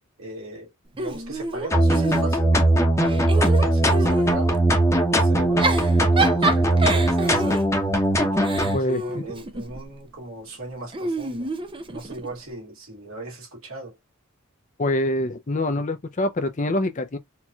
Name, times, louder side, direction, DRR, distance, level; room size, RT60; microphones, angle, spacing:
voice 1, 0.2-2.6 3.0-4.6 5.1-7.6 8.2-11.5 11.9-14.0, right 2 dB, 70° right, 2.2 m, -38 dB
Giggle / Chuckle chortle, 1.0-2.6 3.0-4.4 5.4-9.9 10.9-12.3, right 3 dB, 25° right, 0.5 m, -28 dB
sound 1, 1.7-8.8, right 1 dB, 15° left, 0.9 m, -20 dB
voice 2, 8.7-9.2 14.8-17.2, left 1 dB, 35° left, 0.6 m, -25 dB
4.4 x 3.0 x 2.3 m
head